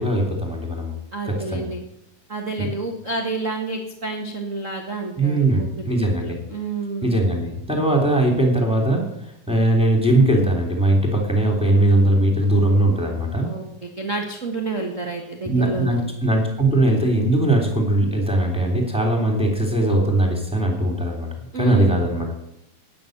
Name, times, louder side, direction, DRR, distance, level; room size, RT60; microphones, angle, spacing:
voice 1, 0.0-0.9 1.2-1.7 2.6-2.7 5.2-6.4 7.0-9.1 9.5-13.5 15.4-21.3 21.5-22.3, right 1 dB, ahead, 0 dB, 2.5 m, -20 dB
voice 2, 1.1-1.8 2.3-5.7 6.2-7.2 13.4-16.1 21.5-21.9, right 3 dB, 50° right, 2 dB, 0.9 m, -29 dB
12.5 x 9.9 x 7.9 m, 0.81 s
omnidirectional pair, 4.2 m